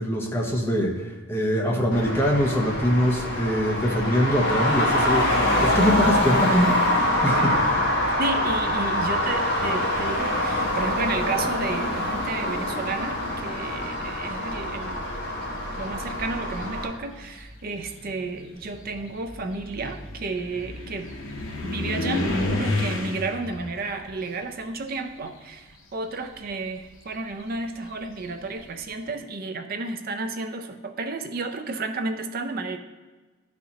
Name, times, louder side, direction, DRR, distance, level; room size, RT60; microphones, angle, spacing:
voice 1, 0.0-7.6, equal, 10° left, 0 dB, 0.7 m, -23 dB
Traffic noise roadway noise, 1.9-16.9, left 1 dB, 55° left, 1.2 m, -25 dB
voice 2, 8.2-15.1 15.8-21.1 21.6-32.8, right 3 dB, 45° right, 6 dB, 0.5 m, -32 dB
sound 1, 13.6-14.1 15.1-15.2 15.8-25.7 26.0-28.6, left 2 dB, 75° left, 1.0 m, -33 dB
11.0 x 4.3 x 2.8 m, 1.3 s
head